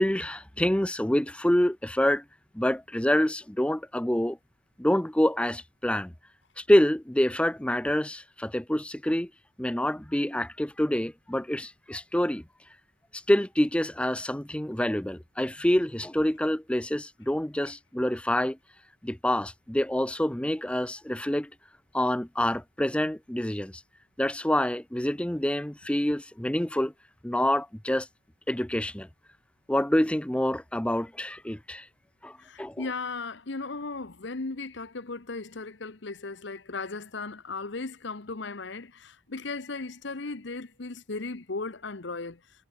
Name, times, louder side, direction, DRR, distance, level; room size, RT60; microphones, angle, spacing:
voice 1, 0.0-2.2 2.5-4.4 4.8-6.1 6.6-9.3 9.6-12.4 13.1-18.6 19.0-21.5 21.9-23.8 24.2-26.9 27.2-28.1 28.5-29.1 29.7-31.9 32.2-32.9, left 1 dB, 5° left, 0.6 m, -26 dB
voice 2, 32.4-42.4, left 3 dB, 60° left, 1.1 m, -36 dB
head